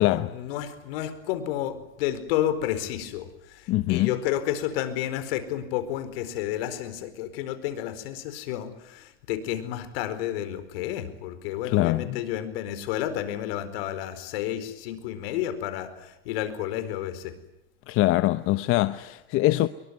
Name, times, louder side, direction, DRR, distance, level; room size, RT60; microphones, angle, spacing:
voice 1, 0.0-17.3, left 11 dB, 70° left, 4.6 m, -31 dB
voice 2, 3.7-4.2 11.6-12.2 17.9-19.7, left 17 dB, 45° left, 1.0 m, -23 dB
25.5 x 23.0 x 9.5 m
supercardioid pair, 120°, 31 cm